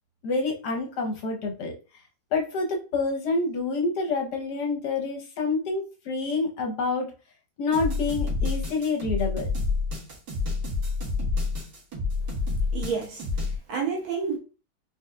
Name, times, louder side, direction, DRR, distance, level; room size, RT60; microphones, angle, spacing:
voice 1, 0.2-1.7 2.3-7.1 7.6-9.5, left 3 dB, 65° left, 1.2 m, -27 dB
sound 1, 7.7-13.6, left 3 dB, 55° right, 2.2 m, -28 dB
voice 2, 12.7-14.4, right 5 dB, 75° right, 1.9 m, -30 dB
4.7 x 3.7 x 2.2 m
omnidirectional pair, 2.2 m